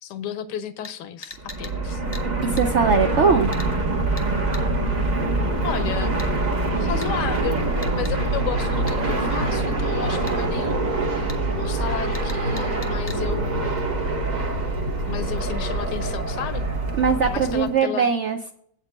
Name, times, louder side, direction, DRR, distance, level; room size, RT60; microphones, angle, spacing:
voice 1, 0.0-2.0 5.6-6.3 6.8-7.6 7.9-13.7 14.9-16.7 17.2-18.1, left 9 dB, 80° left, 12 dB, 1.3 m, -33 dB
sound 1, 0.8-1.0 1.2-1.8 2.1-2.3 2.6-2.7 3.5-3.7 4.2-4.3 4.5-4.7 6.2-6.3 7.0-7.1 7.8-8.2 8.9-9.0 10.3-10.4 11.3-11.4 12.1-13.2 13.7-13.8, left 2 dB, 20° left, 0.7 m, -40 dB
Fixed-wing aircraft airplane, 1.4-17.8, right 2 dB, 35° right, 0.8 m, -24 dB
voice 2, 2.4-3.5 17.0-18.5, right 5 dB, 65° right, 5 dB, 0.7 m, -20 dB
8.2 x 4.4 x 7.0 m, 0.64 s
omnidirectional pair, 1.8 m